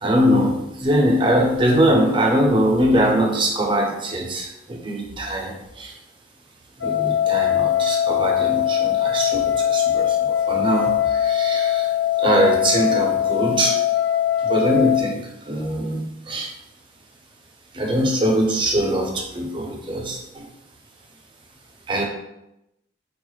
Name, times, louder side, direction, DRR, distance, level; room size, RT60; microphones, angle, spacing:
voice 1, 0.0-6.0 6.8-11.9 12.2-13.8 14.4-16.5 17.7-20.5 21.9-22.0, equal, 25° right, 0 dB, 0.6 m, -22 dB
sound 1, 6.8-15.0, left 11 dB, 90° left, 0.9 m, -21 dB
4.5 x 2.3 x 3.1 m, 0.87 s
head